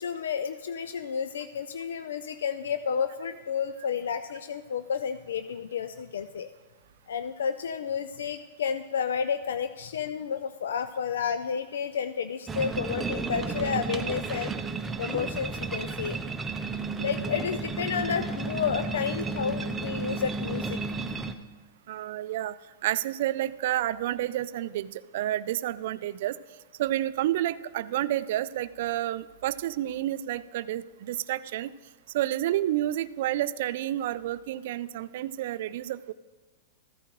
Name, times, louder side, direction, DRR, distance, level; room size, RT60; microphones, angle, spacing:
voice 1, 0.0-6.5 7.1-14.5 15.0-16.2 17.0-20.8, left 7 dB, 90° left, 11 dB, 0.4 m, -31 dB
sound 1, 12.5-21.3, right 4 dB, 10° right, 0.6 m, -33 dB
voice 2, 21.9-22.6 22.8-26.4 26.8-31.7 32.1-36.1, right 13 dB, 65° right, 16 dB, 0.4 m, -30 dB
14.0 x 9.9 x 3.0 m, 1.3 s
hypercardioid pair, 140°, 0 cm